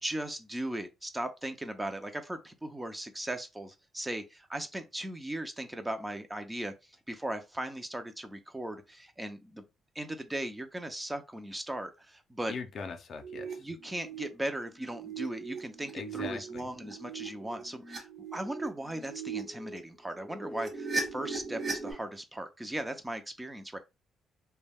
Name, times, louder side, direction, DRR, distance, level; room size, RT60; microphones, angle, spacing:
voice 1, 0.0-6.7 7.1-9.6 10.0-12.5 13.6-23.8, right 1 dB, 15° right, 0.5 m, -38 dB
voice 2, 12.5-13.7 15.9-16.7, left 5 dB, 60° left, 0.5 m, -41 dB
sound 1, 13.2-13.5 13.8-14.3 14.7-19.8 20.1-21.9, right 4 dB, 45° right, 1.2 m, -39 dB
2.2 x 2.1 x 3.3 m
cardioid pair, 90°, 0 cm